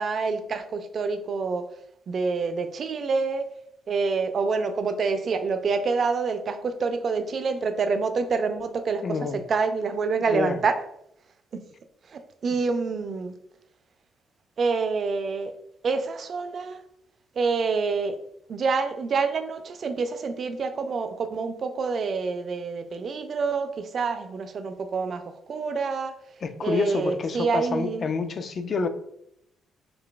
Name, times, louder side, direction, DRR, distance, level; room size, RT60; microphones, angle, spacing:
voice 1, 0.0-1.6 2.1-3.4 3.9-10.7 12.1-13.3 14.6-15.5 15.8-16.8 17.4-18.2 18.5-26.1 26.6-28.1, right 4 dB, 50° right, 9 dB, 0.3 m, -27 dB
voice 2, 9.0-9.4 10.3-10.6 26.4-28.9, left 4 dB, 45° left, 10 dB, 0.3 m, -28 dB
3.8 x 3.2 x 2.3 m, 0.76 s
cardioid pair, 90°, 0 cm